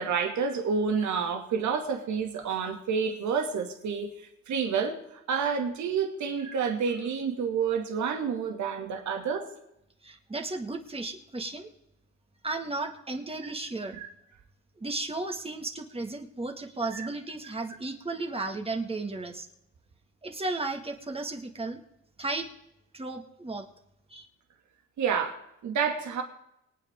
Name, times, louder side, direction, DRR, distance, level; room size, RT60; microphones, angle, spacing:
voice 1, 0.0-9.5 13.4-13.5 13.9-14.1 16.9-17.1 25.0-26.2, right 6 dB, 70° right, 2.5 m, -29 dB
voice 2, 10.0-11.7 12.4-14.0 14.8-19.5 20.2-21.8 22.2-22.5 22.9-23.7 24.1-24.3, right 2 dB, 20° right, 2.1 m, -34 dB
24.5 x 9.2 x 3.8 m
cardioid pair, 90°, 30 cm